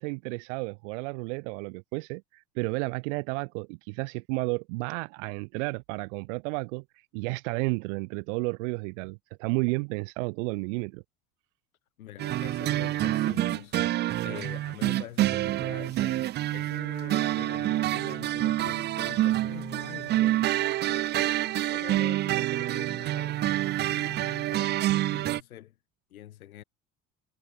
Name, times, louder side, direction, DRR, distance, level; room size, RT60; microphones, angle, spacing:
voice 1, 0.0-6.8 7.1-11.0, right 29 dB, 55° right, 0.7 m, -32 dB
voice 2, 12.0-13.8 14.2-20.6 20.8-25.7 26.1-26.6, left 13 dB, 75° left, 1.0 m, -45 dB
sound 1, 12.2-25.4, right 14 dB, 25° right, 0.4 m, -27 dB
figure-of-eight pair, 60°, 43 cm